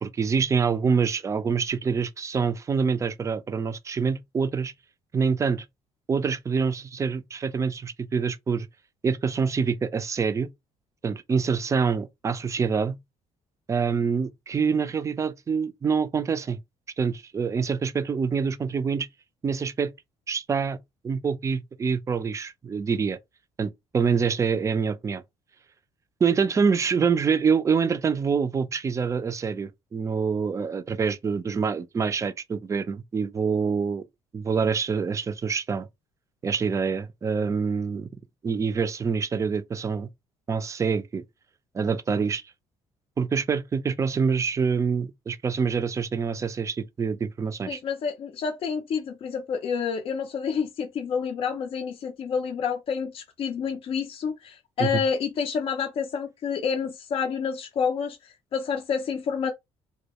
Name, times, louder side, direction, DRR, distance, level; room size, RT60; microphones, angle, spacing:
voice 1, 0.0-4.7 5.1-5.6 6.1-8.7 9.0-10.5 11.0-13.0 13.7-16.6 17.0-19.1 19.4-19.9 20.3-20.8 21.0-23.2 23.6-25.2 26.2-34.0 34.3-35.9 36.4-38.1 38.4-40.1 40.5-41.2 41.7-42.4 43.2-47.8 54.8-55.0, right 5 dB, 25° right, 0.3 m, -26 dB
voice 2, 47.7-59.5, left 6 dB, 50° left, 0.4 m, -29 dB
2.2 x 2.1 x 2.8 m
cardioid pair, 95°, 12 cm